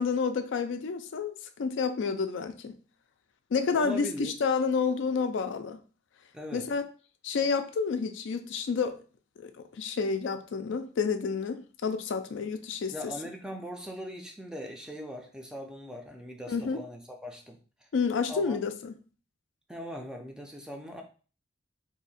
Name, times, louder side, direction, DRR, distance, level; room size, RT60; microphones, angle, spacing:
voice 1, 0.0-2.7 3.5-5.8 6.5-6.8 7.2-9.0 9.4-9.5 9.8-12.9 16.5-16.8 17.9-19.0, left 5 dB, 70° left, 0.4 m, -29 dB
voice 2, 3.7-4.3 6.3-6.7 12.9-17.9 18.3-18.6 19.7-21.0, equal, 5° right, 0.4 m, -40 dB
2.7 x 2.5 x 4.1 m
head